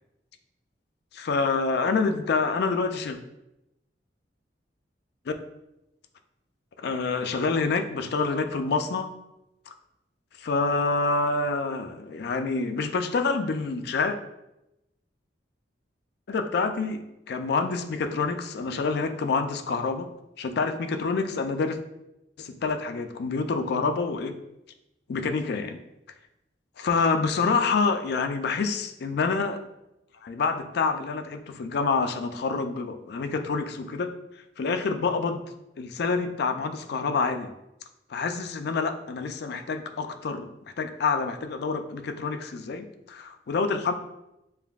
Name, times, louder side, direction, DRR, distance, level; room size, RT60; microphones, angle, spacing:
voice 1, 1.2-3.2 5.3-5.4 6.8-9.1 9.7-9.8 10.4-14.2 16.3-20.1 20.4-21.8 22.4-24.4 25.1-25.8 26.8-29.6 30.2-34.1 34.6-35.4 35.8-37.5 38.1-40.5 40.8-43.9, left 4 dB, 65° left, 8 dB, 0.4 m, -27 dB
7.0 x 2.6 x 2.3 m, 0.89 s
head